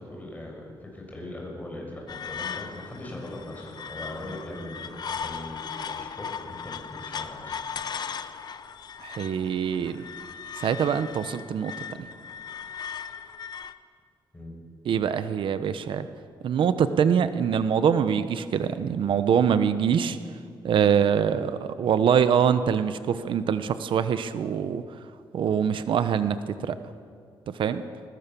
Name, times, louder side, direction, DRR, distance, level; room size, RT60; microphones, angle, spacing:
voice 1, 0.0-7.6 14.3-14.5, left 1 dB, 20° left, 0 dB, 6.4 m, -40 dB
sound 1, 2.1-13.7, left 7 dB, 55° left, 0.9 m, -38 dB
voice 2, 9.0-10.0 10.6-11.7 14.9-16.1 16.4-20.2 20.6-24.8 25.3-26.4 26.6-26.8 27.6-27.8, right 7 dB, 80° right, 11 dB, 1.0 m, -24 dB
22.0 x 20.0 x 7.0 m, 2.2 s
cardioid pair, 115°, 9 cm